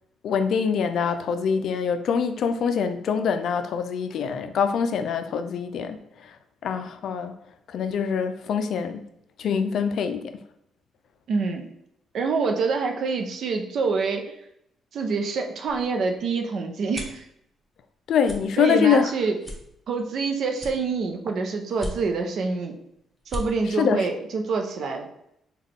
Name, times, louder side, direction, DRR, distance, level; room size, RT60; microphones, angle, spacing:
voice 1, 0.2-6.4 6.6-7.4 7.7-9.0 9.4-10.4 18.1-19.1 23.7-24.1, left 6 dB, 70° left, 8 dB, 0.4 m, -24 dB
voice 2, 11.3-11.7 12.1-14.3 14.9-17.2 18.6-19.4 19.9-22.7 23.3-25.1, right 4 dB, 65° right, 4 dB, 0.5 m, -26 dB
sound 1, 15.6-17.3 17.7-17.9 18.2-18.4 18.9-19.0 19.4-20.2 20.5-21.2 21.7-22.3 22.8-22.9 23.1-23.4, left 1 dB, 5° left, 0.8 m, -36 dB
3.7 x 2.3 x 3.5 m, 0.77 s
cardioid pair, 90°, 0 cm